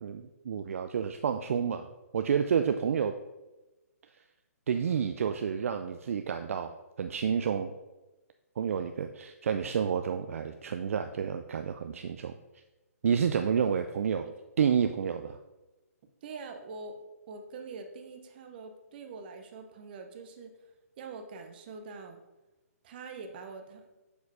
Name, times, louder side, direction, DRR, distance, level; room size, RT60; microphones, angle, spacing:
voice 1, 0.0-3.1 4.7-6.7 7.0-7.7 8.6-12.4 13.0-14.3 14.6-15.4, right 7 dB, 55° right, 8 dB, 0.4 m, -29 dB
voice 2, 16.2-17.0 17.3-20.5 21.0-22.2 22.8-23.9, right 4 dB, 35° right, 6 dB, 0.9 m, -44 dB
6.9 x 4.5 x 4.8 m, 1.1 s
hypercardioid pair, 150°, 9 cm